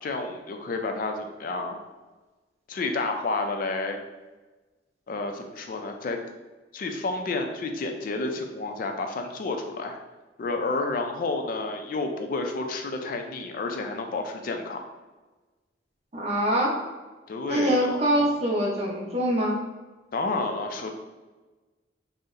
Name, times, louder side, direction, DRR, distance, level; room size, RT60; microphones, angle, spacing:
voice 1, 0.0-1.8 2.7-4.0 5.1-6.2 6.7-10.0 10.4-14.8 17.3-18.0 20.1-20.9, left 3 dB, 45° left, 4 dB, 0.3 m, -30 dB
voice 2, 16.1-16.7 17.5-19.6, equal, 35° right, -3 dB, 0.6 m, -24 dB
2.7 x 2.0 x 3.7 m, 1.2 s
head